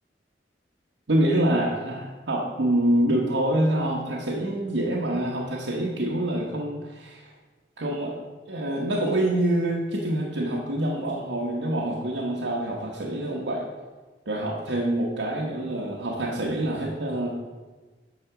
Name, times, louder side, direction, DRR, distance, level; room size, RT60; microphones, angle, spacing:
voice 1, 1.1-7.3 7.8-8.2 8.5-13.7 14.3-17.3, right 1 dB, 90° right, -3 dB, 1.1 m, -26 dB
10.5 x 4.2 x 6.9 m, 1.3 s
head